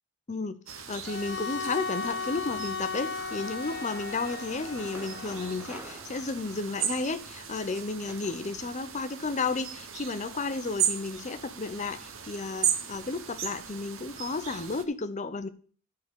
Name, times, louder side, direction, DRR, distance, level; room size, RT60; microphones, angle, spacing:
voice 1, 0.3-15.5, left 3 dB, 35° left, 0.7 m, -33 dB
sound 1, 0.7-14.8, right 8 dB, 65° right, 1.0 m, -37 dB
Bowed string instrument, 1.0-6.0, left 5 dB, 55° left, 1.0 m, -36 dB
sound 2, 2.0-2.6 3.3-8.4, right 1 dB, 10° right, 1.0 m, -50 dB
11.0 x 4.0 x 6.7 m
head